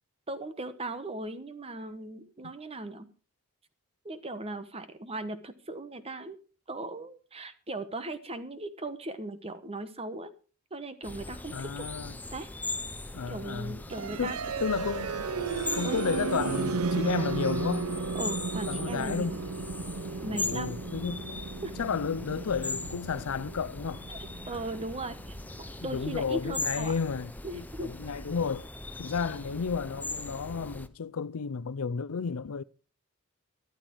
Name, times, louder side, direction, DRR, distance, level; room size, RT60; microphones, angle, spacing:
voice 1, 0.3-3.1 4.0-6.4 6.7-10.3 10.7-11.9 12.3-12.5 13.3-14.4 15.8-16.0 18.1-19.4 20.2-20.8 21.6-21.8 24.1-24.2 24.5-26.9 27.4-27.9, right 2 dB, 25° right, 1.1 m, -38 dB
sound 1, 11.0-30.9, left 2 dB, 10° left, 0.7 m, -40 dB
voice 2, 11.5-12.1 13.1-13.8 14.2-15.3 15.7-17.9 18.7-19.4 20.3-21.4 21.8-24.0 25.8-27.3 27.5-28.7 29.0-32.6, left 5 dB, 80° left, 0.5 m, -32 dB
sound 2, 13.9-25.8, right 4 dB, 85° right, 0.7 m, -34 dB
13.0 x 12.0 x 4.6 m
head